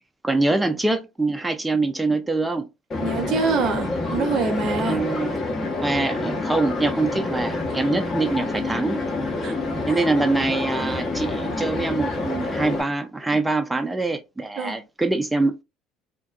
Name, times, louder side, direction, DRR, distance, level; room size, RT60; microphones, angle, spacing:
voice 1, 0.2-2.7 4.8-5.5 5.8-9.0 9.9-15.6, right 3 dB, 10° right, 0.4 m, -24 dB
sound 1, 2.9-12.8, left 2 dB, 40° left, 0.9 m, -27 dB
voice 2, 3.0-5.0 9.4-9.5 14.6-14.8, right 4 dB, 55° right, 0.6 m, -25 dB
2.5 x 2.2 x 2.3 m
hypercardioid pair, 65°, 0 cm